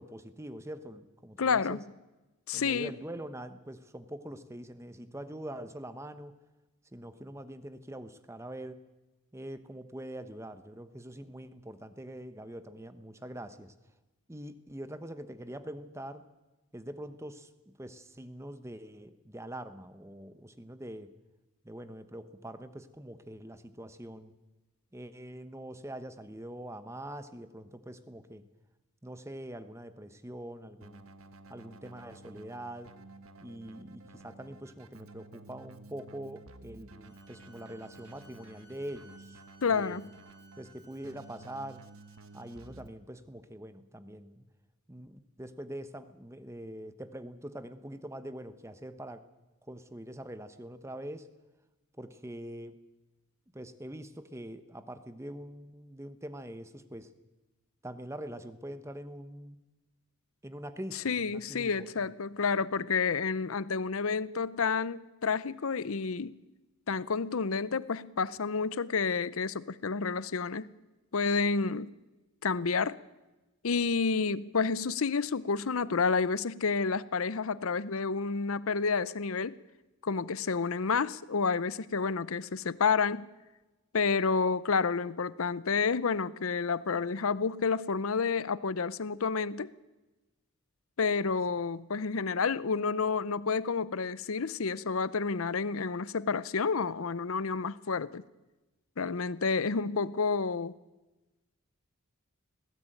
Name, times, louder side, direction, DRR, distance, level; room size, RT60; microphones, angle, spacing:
voice 1, 0.0-1.8 2.5-6.4 6.9-8.8 9.3-13.7 14.3-16.3 16.7-21.1 21.6-24.3 24.9-28.5 29.0-31.1 31.5-32.9 33.4-39.4 39.7-40.0 40.6-41.8 42.3-44.4 44.9-49.2 49.7-51.3 52.0-52.8 53.5-57.1 57.8-59.6 60.4-62.1, right 1 dB, 15° right, 1.0 m, -44 dB
voice 2, 1.4-1.8 2.5-2.9 39.6-40.1 60.9-66.4 66.9-70.7 71.1-71.9 72.4-73.0 73.6-79.6 80.0-83.2 83.9-89.7 91.0-98.2 99.0-100.8, left 5 dB, 70° left, 0.7 m, -30 dB
Keyboard (musical), 30.8-42.9, right 2 dB, 70° right, 1.3 m, -53 dB
sound 1, 37.0-42.7, right 2 dB, 15° left, 4.0 m, -61 dB
20.5 x 17.0 x 9.0 m
head